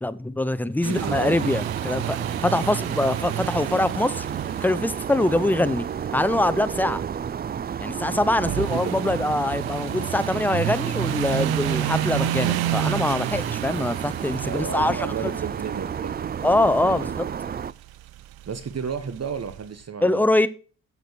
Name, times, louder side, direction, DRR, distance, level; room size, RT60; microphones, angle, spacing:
voice 1, 0.0-4.3 4.6-5.9 6.1-7.0 7.8-15.3 16.4-17.3 20.0-20.5, left 2 dB, 5° left, 0.7 m, -24 dB
voice 2, 0.8-1.5 8.4-9.0 14.4-16.3 16.8-17.1 18.5-20.2, right 6 dB, 45° right, 1.1 m, -32 dB
sound 1, 0.8-19.7, right 13 dB, 90° right, 0.6 m, -32 dB
sound 2, 1.0-17.7, right 8 dB, 30° right, 0.4 m, -31 dB
8.0 x 7.0 x 6.2 m
supercardioid pair, 60°, 35 cm